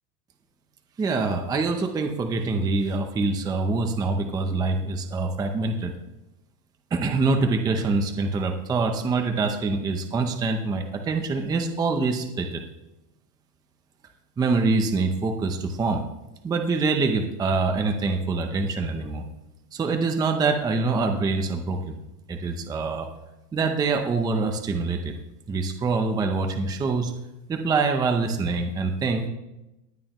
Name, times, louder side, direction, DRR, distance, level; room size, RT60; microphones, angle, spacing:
voice 1, 1.0-5.9 6.9-12.6 14.4-16.0 16.4-19.2 19.7-22.0 22.3-23.1 23.5-25.2 25.5-27.1 27.5-29.3, right 3 dB, 10° right, 5 dB, 0.6 m, -25 dB
18.5 x 11.0 x 3.0 m, 0.95 s
supercardioid pair, 165°, 46 cm